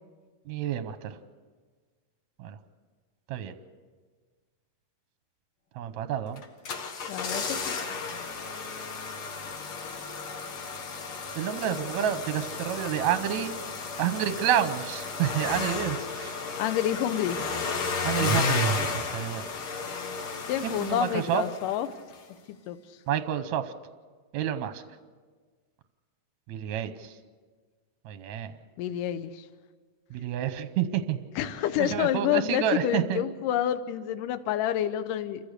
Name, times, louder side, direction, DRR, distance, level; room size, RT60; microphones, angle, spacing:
voice 1, 0.5-1.2 2.4-2.6 3.3-3.5 5.8-6.4 11.4-13.5 14.0-16.4 18.0-19.4 20.6-21.4 23.1-23.7 24.3-24.8 26.5-27.1 28.1-28.5 30.1-31.2 31.8-33.2, right 10 dB, 70° right, 11 dB, 1.8 m, -29 dB
sound 1, 6.4-21.9 22.1-22.2, left 4 dB, 50° left, 1.7 m, -33 dB
voice 2, 7.1-7.8 16.6-17.4 20.5-21.9 22.5-22.8 28.8-29.5 31.4-35.5, left 11 dB, 75° left, 12 dB, 2.4 m, -28 dB
28.0 x 15.0 x 6.7 m, 1.5 s
omnidirectional pair, 4.1 m